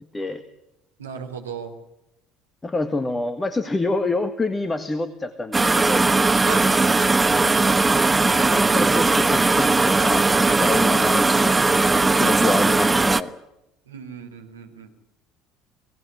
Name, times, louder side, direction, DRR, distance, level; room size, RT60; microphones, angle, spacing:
voice 1, 1.0-1.8 6.4-6.7 13.9-14.9, right 7 dB, 80° right, 4 dB, 2.9 m, -36 dB
voice 2, 2.6-6.1 8.5-10.3 10.6-11.6 11.9-13.3, left 2 dB, 20° left, 11 dB, 1.7 m, -27 dB
sound 1, 5.5-13.2, right 3 dB, 15° right, 1.1 m, -18 dB
25.0 x 18.0 x 9.8 m, 0.88 s
figure-of-eight pair, 60°, 0 cm